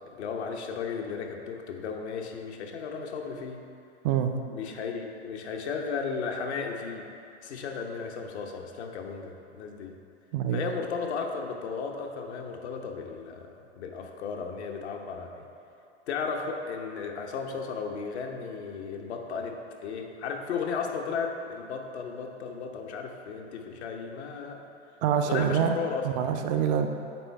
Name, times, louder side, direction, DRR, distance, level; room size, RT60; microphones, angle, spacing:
voice 1, 0.2-3.6 4.5-7.0 7.4-9.9 10.5-15.4 16.1-19.6 19.8-24.6 25.2-26.0, left 5 dB, 70° left, 2 dB, 0.9 m, -35 dB
voice 2, 25.0-25.8 26.0-26.9, right 8 dB, 40° right, 6 dB, 0.5 m, -25 dB
8.8 x 3.4 x 4.5 m, 2.7 s
hypercardioid pair, 105°, 35 cm